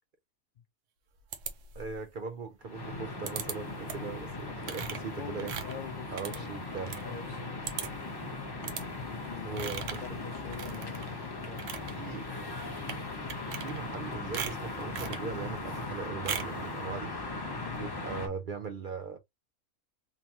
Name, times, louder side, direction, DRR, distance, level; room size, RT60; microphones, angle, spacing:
sound 1, 1.3-2.0 3.3-3.6 3.9-4.2 4.6-7.0 7.3-7.4 7.6-8.1 8.6-8.9 9.6-10.1 10.5-11.1 11.4-11.9 12.8-13.0 13.3-14.0 14.3-15.3 16.3-16.6, right 8 dB, 70° right, 1.0 m, -39 dB
voice 1, 1.7-5.6 6.1-7.0 9.4-10.0 11.9-12.3 13.6-17.1 17.8-19.2, right 5 dB, 55° right, 0.6 m, -39 dB
sound 2, 2.6-18.3, left 3 dB, 25° left, 0.6 m, -39 dB
voice 2, 5.2-6.5 6.8-7.6 9.0-9.7 10.0-11.7 17.6-17.9, left 7 dB, 90° left, 0.4 m, -44 dB
sound 3, 9.4-11.3 14.1-16.1, left 6 dB, 70° left, 1.0 m, -51 dB
3.8 x 2.9 x 2.6 m
omnidirectional pair, 1.4 m